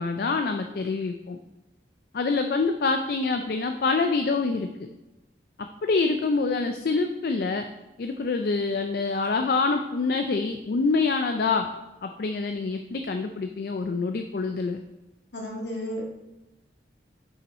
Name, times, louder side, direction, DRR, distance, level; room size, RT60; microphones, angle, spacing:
voice 1, 0.0-1.4 2.1-4.7 5.8-7.7 8.0-11.7 12.0-14.8, left 4 dB, 55° left, 6 dB, 0.4 m, -26 dB
voice 2, 15.3-16.1, equal, 70° left, -2 dB, 1.7 m, -33 dB
5.7 x 5.4 x 4.2 m, 1.0 s
head